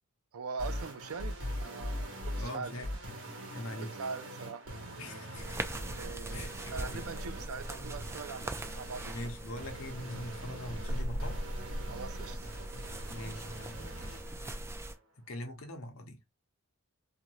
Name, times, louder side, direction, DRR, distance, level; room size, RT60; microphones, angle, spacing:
voice 1, 0.3-1.4 1.6-2.7 4.0-4.6 5.9-9.2 11.9-12.5, right 5 dB, 70° right, 0.4 m, -42 dB
sound 1, 0.6-14.6, equal, 55° right, 1.1 m, -43 dB
voice 2, 2.4-2.9 3.2-3.9 5.0-5.8 6.3-7.1 9.0-11.4 13.1-14.6 15.3-16.4, left 1 dB, 65° left, 0.8 m, -43 dB
sound 2, 5.4-15.0, right 1 dB, 10° right, 0.3 m, -40 dB
2.6 x 2.5 x 2.9 m
head